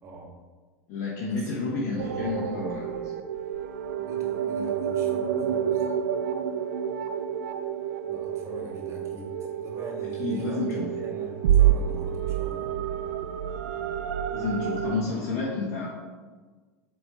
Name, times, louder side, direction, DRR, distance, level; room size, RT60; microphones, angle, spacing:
voice 1, 0.9-3.1 10.2-10.9 14.3-15.9, left 3 dB, 50° left, -5 dB, 1.5 m, -30 dB
voice 2, 1.6-2.5 3.9-5.9 8.0-12.7, right 3 dB, 35° right, -1 dB, 1.9 m, -42 dB
sound 1, 2.0-15.0, right 9 dB, 75° right, 0.4 m, -28 dB
7.6 x 3.8 x 4.4 m, 1.4 s
hypercardioid pair, 90°, 8 cm